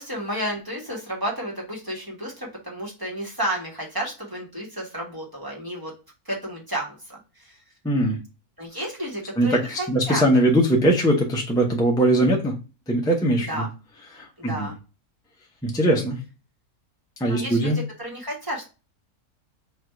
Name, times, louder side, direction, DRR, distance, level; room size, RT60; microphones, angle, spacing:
voice 1, 0.0-5.9 6.2-7.6 8.6-10.2 13.4-13.7 14.4-14.7 17.2-18.7, right 1 dB, 15° right, -3 dB, 1.2 m, -32 dB
voice 2, 7.8-8.2 9.4-12.5 12.9-13.6 14.1-14.7 15.6-16.2 17.2-17.8, right 1 dB, 5° left, -1 dB, 0.3 m, -21 dB
3.4 x 2.5 x 4.3 m, 0.31 s
omnidirectional pair, 1.6 m